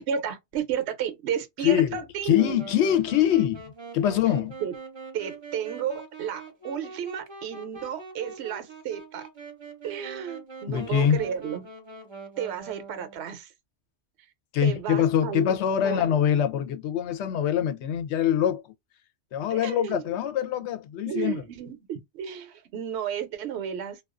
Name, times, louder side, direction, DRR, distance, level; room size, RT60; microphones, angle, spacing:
voice 1, 0.0-2.4 4.6-4.7 5.1-9.3 9.8-11.6 12.4-13.5 14.6-15.6 15.8-16.1 19.5-20.0 21.1-24.0, right 8 dB, 70° right, 0.9 m, -32 dB
voice 2, 1.6-3.6 3.9-4.6 10.7-11.2 14.5-18.7 19.3-21.4, left 10 dB, 75° left, 0.8 m, -24 dB
Wind instrument woodwind instrument, 2.3-13.3, right 4 dB, 30° right, 0.6 m, -43 dB
2.3 x 2.3 x 2.3 m
omnidirectional pair, 1.2 m